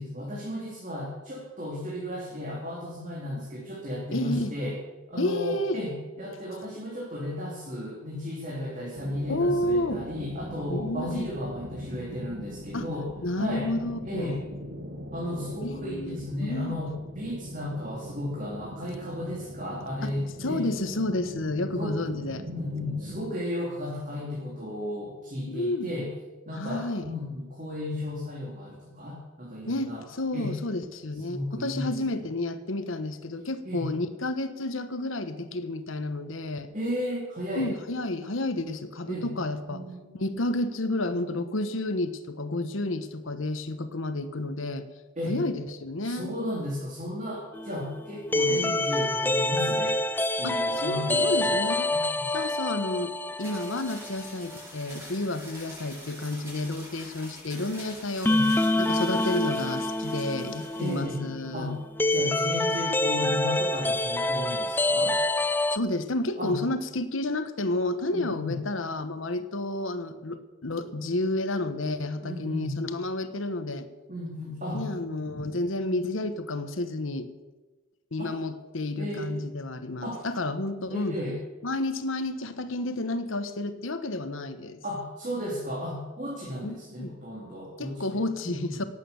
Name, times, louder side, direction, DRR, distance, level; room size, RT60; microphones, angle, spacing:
voice 1, 0.0-4.8 5.1-13.1 13.3-13.7 14.1-14.4 15.1-20.7 21.7-26.1 26.4-30.0 30.3-30.5 31.1-32.0 33.6-33.9 36.7-37.7 39.1-39.3 39.7-40.3 45.2-45.4 46.0-51.6 51.9-52.3 58.3-58.5 60.8-61.2 61.5-61.8 62.1-65.2 66.4-66.6 68.1-68.6 72.2-72.8 74.1-74.9 75.3-75.4 78.2-78.3 79.0-79.4 80.0-80.2 80.9-81.4 84.8-88.6, left 1 dB, 40° right, -4 dB, 3.2 m, -34 dB
voice 2, 4.1-4.5 5.2-5.8 9.3-10.0 10.7-11.3 12.7-12.9 13.2-14.4 15.6-16.8 20.0-20.1 20.4-22.4 25.5-25.9 26.5-27.1 29.7-36.7 37.5-39.8 40.1-44.8 45.3-46.3 48.5-48.8 50.4-51.9 52.3-58.3 58.8-61.8 65.7-73.9 74.7-77.3 78.1-81.2 81.6-84.8 86.6-87.2 87.8-88.8, left 2 dB, 90° left, 10 dB, 1.2 m, -31 dB
sound 1, 8.9-23.2, equal, 90° right, 1.8 m, -40 dB
sound 2, 47.5-54.2 54.5-54.6 58.2-65.8, left 2 dB, 10° left, 0.4 m, -27 dB
sound 3, 53.4-61.0, equal, 15° right, 5.5 m, -45 dB
18.0 x 8.5 x 7.0 m, 1.2 s
head